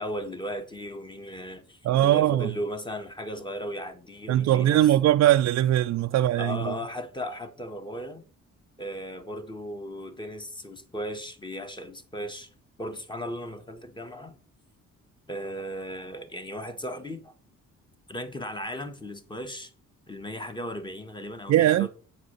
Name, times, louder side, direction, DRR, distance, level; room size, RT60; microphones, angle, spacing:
voice 1, 0.0-4.9 6.4-8.3 8.8-12.5 12.8-14.4 15.3-17.3 18.1-19.7 20.1-21.9, equal, 15° left, 1.6 m, -36 dB
voice 2, 1.8-2.5 4.3-6.7 21.5-21.9, right 13 dB, 60° right, 0.4 m, -21 dB
9.0 x 4.9 x 6.6 m
cardioid pair, 90°, 30 cm